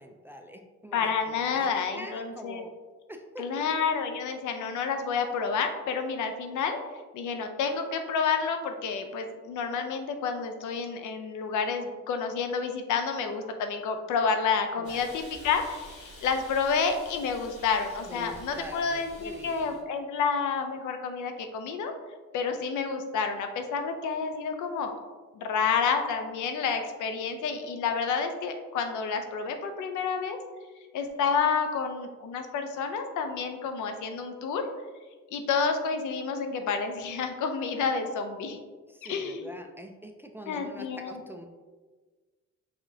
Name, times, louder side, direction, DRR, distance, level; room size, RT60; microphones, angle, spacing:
voice 1, 0.0-2.7 3.1-3.6 14.7-15.1 18.1-19.8 38.9-41.5, equal, 5° right, 3 dB, 0.4 m, -44 dB
voice 2, 0.9-2.6 3.4-6.8 7.1-21.9 22.3-24.9 25.3-30.4 30.9-34.6 35.3-38.6 39.1-39.5 40.5-41.2, left 5 dB, 80° left, 6 dB, 0.6 m, -29 dB
Hiss, 14.8-19.8, equal, 50° left, 1.4 m, -49 dB
4.9 x 3.6 x 2.7 m, 1.4 s
cardioid pair, 90°, 30 cm